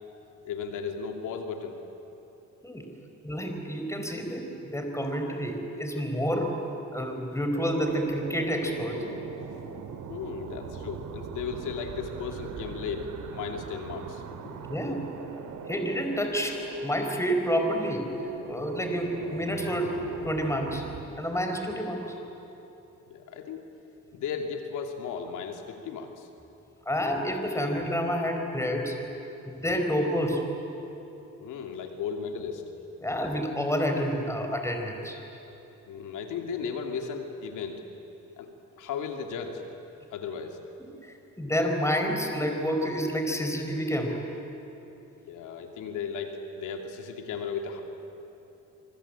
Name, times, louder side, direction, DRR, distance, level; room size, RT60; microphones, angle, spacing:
voice 1, 0.4-1.8 10.1-14.5 23.1-23.6 24.1-26.3 31.4-32.7 35.9-37.8 38.4-38.5 38.8-39.6 40.1-40.6 45.2-47.8, left 6 dB, 90° left, 4 dB, 2.7 m, -35 dB
voice 2, 3.2-6.5 6.9-9.0 14.7-15.0 15.7-18.1 18.5-20.0 20.2-20.8 21.2-22.1 26.9-29.0 29.5-30.4 33.0-35.2 40.8-40.9 41.4-44.2, equal, 10° left, 4 dB, 4.6 m, -29 dB
sound 1, 7.6-21.0, right 6 dB, 80° right, 2.5 m, -41 dB
26.5 x 24.5 x 8.8 m, 3.0 s
cardioid pair, 90°, 30 cm